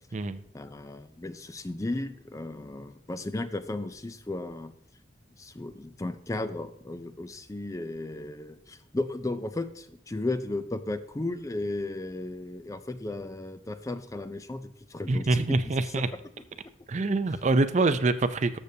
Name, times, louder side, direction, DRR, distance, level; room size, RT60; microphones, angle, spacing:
voice 1, 0.5-4.8 5.4-16.0, left 2 dB, 20° left, 11 dB, 0.4 m, -35 dB
voice 2, 15.1-16.1 16.9-18.6, right 3 dB, 40° right, 12 dB, 0.5 m, -25 dB
13.5 x 6.7 x 2.7 m, 0.71 s
head